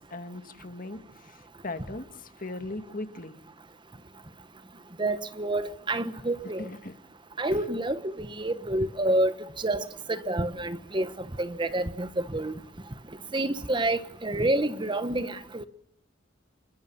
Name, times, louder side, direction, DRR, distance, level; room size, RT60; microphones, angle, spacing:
voice 1, 0.1-3.4 6.2-6.3 6.6-7.0 7.5-7.6, left 2 dB, 50° left, 2.0 m, -39 dB
voice 2, 5.0-6.7 7.4-12.5 13.3-15.7, right 1 dB, 25° right, 1.2 m, -28 dB
27.5 x 22.5 x 7.2 m
head